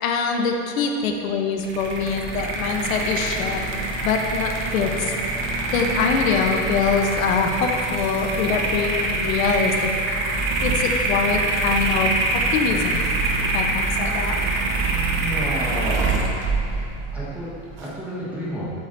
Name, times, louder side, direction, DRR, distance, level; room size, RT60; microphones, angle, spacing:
voice 1, 0.0-3.6 4.0-5.1 5.7-9.9 10.6-13.1 13.4-14.4, left 5 dB, 85° left, 3 dB, 0.9 m, -24 dB
sound 1, 1.6-17.9, right 2 dB, 30° right, 0.9 m, -25 dB
voice 2, 15.1-16.3 17.1-17.5 17.8-18.7, equal, 5° right, -8 dB, 1.3 m, -30 dB
8.1 x 8.0 x 2.6 m, 2.7 s
supercardioid pair, 155°, 40 cm